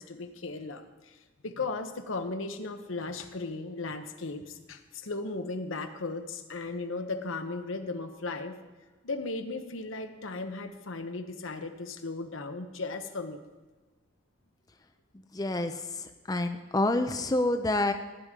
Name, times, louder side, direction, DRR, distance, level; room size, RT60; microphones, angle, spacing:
voice 1, 0.0-8.6 9.0-13.4, left 3 dB, 80° left, 7 dB, 0.9 m, -36 dB
voice 2, 15.3-17.9, left 2 dB, 20° left, 7 dB, 0.5 m, -28 dB
17.0 x 9.9 x 3.7 m, 1.2 s
head